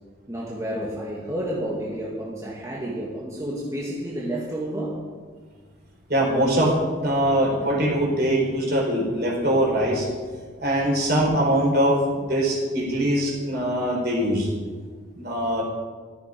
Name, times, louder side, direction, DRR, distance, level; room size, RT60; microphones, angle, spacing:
voice 1, 0.3-5.0, right 1 dB, 15° right, -5 dB, 2.1 m, -30 dB
voice 2, 6.1-10.1 10.6-12.0 12.3-14.5 15.1-15.6, right 1 dB, 50° right, -1 dB, 4.5 m, -22 dB
14.5 x 13.5 x 5.3 m, 1.5 s
head